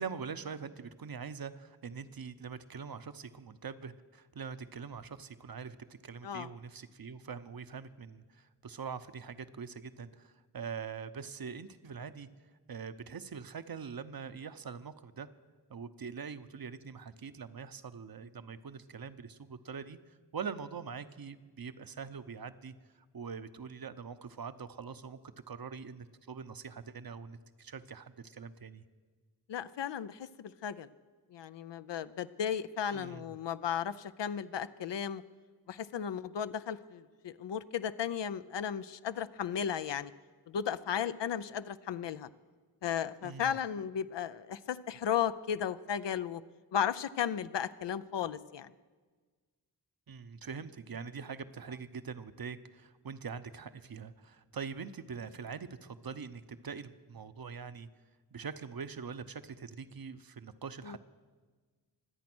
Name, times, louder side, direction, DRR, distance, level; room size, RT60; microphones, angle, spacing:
voice 1, 0.0-12.3 12.7-15.3 15.7-22.7 23.1-25.2 25.5-28.8 32.9-33.4 43.2-43.6 50.1-57.9 58.3-61.0, right 6 dB, 60° right, 12 dB, 0.9 m, -43 dB
voice 2, 29.5-30.9 31.3-35.2 35.7-40.1 40.5-42.3 42.8-46.4 46.7-48.7 60.8-61.0, left 8 dB, 85° left, 12 dB, 0.6 m, -35 dB
24.0 x 8.5 x 6.1 m, 1.4 s
cardioid pair, 50°, 41 cm